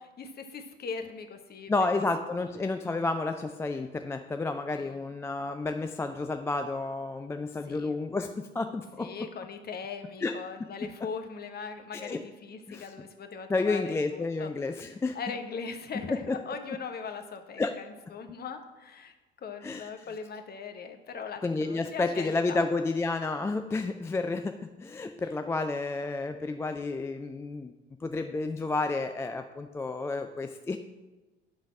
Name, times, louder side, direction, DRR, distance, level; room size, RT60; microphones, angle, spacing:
voice 1, 0.0-1.9 2.5-2.6 4.7-5.1 7.6-8.0 9.0-14.5 15.1-19.1 19.4-22.6, left 5 dB, 30° left, 6 dB, 1.0 m, -40 dB
voice 2, 1.7-9.1 10.2-10.3 11.9-12.2 12.7-12.9 13.5-15.2 17.6-17.7 19.6-19.9 21.4-27.7 28.0-30.8, left 3 dB, 10° left, 6 dB, 0.3 m, -31 dB
9.5 x 4.0 x 7.1 m, 1.2 s
figure-of-eight pair, 60°, 32 cm